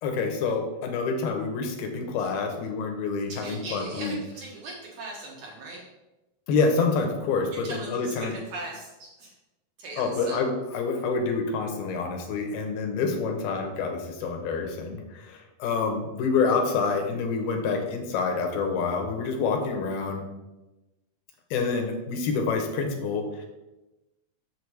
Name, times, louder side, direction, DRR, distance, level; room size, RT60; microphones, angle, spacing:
voice 1, 0.0-4.2 6.5-8.3 10.0-20.2 21.5-23.5, left 4 dB, 75° left, 4 dB, 2.9 m, -27 dB
voice 2, 3.3-5.8 7.5-9.3 9.8-10.4, right 2 dB, 65° right, -3 dB, 2.3 m, -39 dB
7.1 x 7.1 x 4.7 m, 1.0 s
omnidirectional pair, 4.6 m